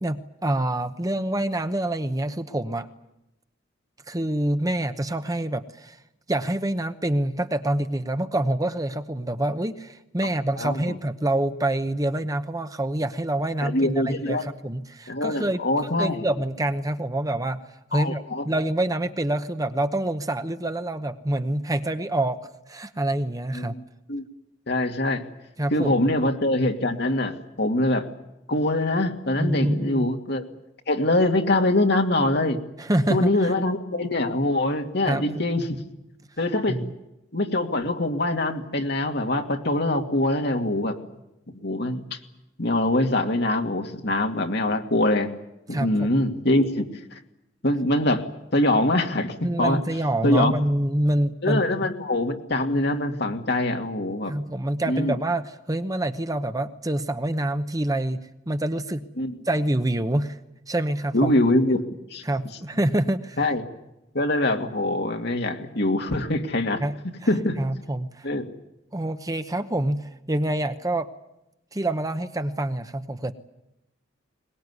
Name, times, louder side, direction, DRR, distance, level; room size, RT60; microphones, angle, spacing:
voice 1, 0.0-2.9 4.1-6.0 6.3-15.6 16.0-17.6 17.9-23.7 25.6-26.0 29.4-30.1 32.8-33.5 35.0-35.2 36.7-36.9 45.7-46.1 49.4-51.6 54.3-58.2 58.5-59.0 59.5-60.4 60.7-61.3 62.2-63.4 66.8-66.9 67.6-68.3 68.9-71.1 71.7-73.3, right 1 dB, 20° right, 9 dB, 0.9 m, -26 dB
voice 2, 10.6-11.0 13.6-14.5 15.1-16.2 17.9-18.4 23.5-23.8 24.1-24.2 24.7-25.3 25.7-28.1 28.5-30.4 30.9-32.6 33.1-35.7 36.4-36.8 37.3-41.0 41.6-42.2 42.6-45.3 45.7-46.8 47.6-48.2 48.5-49.8 50.2-50.5 51.4-54.3 54.9-55.1 59.2-59.4 61.1-61.8 62.1-62.2 63.4-63.6 64.1-66.8 67.3-67.6 68.2-68.4, left 1 dB, 60° left, 4 dB, 2.4 m, -23 dB
22.5 x 21.0 x 9.7 m, 0.89 s
head